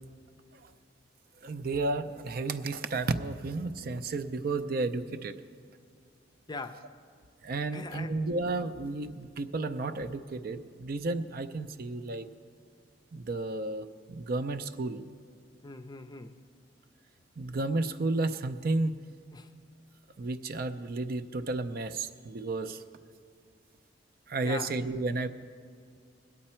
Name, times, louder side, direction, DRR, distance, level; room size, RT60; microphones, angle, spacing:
voice 1, 1.4-5.3 7.4-12.3 13.1-15.0 17.4-19.0 20.2-22.8 24.3-25.3, right 3 dB, 55° right, 0.5 m, -32 dB
voice 2, 6.5-6.9 7.7-8.1 15.6-16.3 19.3-19.5 24.4-24.7, left 3 dB, 25° left, 0.5 m, -41 dB
20.5 x 8.7 x 4.4 m
head